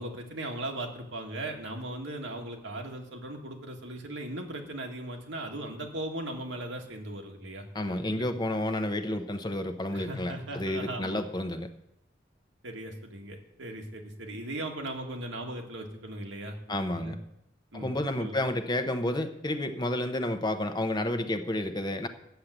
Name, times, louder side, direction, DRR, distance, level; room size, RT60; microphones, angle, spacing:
voice 1, 0.0-8.2 9.9-11.3 12.6-17.2 17.7-18.4, right 1 dB, 90° right, 1 dB, 1.9 m, -38 dB
voice 2, 7.7-11.7 16.7-17.2 17.7-22.1, left 1 dB, 25° left, 8 dB, 0.8 m, -30 dB
10.0 x 7.4 x 8.0 m, 0.84 s
head